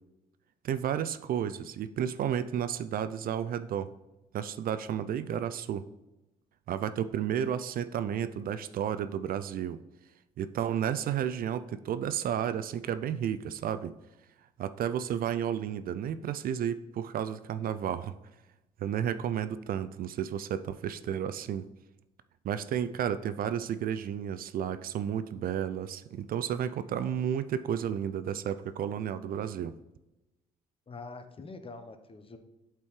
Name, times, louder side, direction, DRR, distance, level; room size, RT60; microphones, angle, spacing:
voice 1, 0.6-3.9 4.3-5.8 6.7-9.8 10.4-13.9 14.6-18.1 18.8-21.7 22.4-29.7, right 9 dB, 55° right, 12 dB, 0.4 m, -32 dB
voice 2, 30.9-32.4, left 3 dB, 30° left, 8 dB, 0.8 m, -44 dB
8.3 x 4.4 x 3.2 m, 0.99 s
supercardioid pair, 60°, 18 cm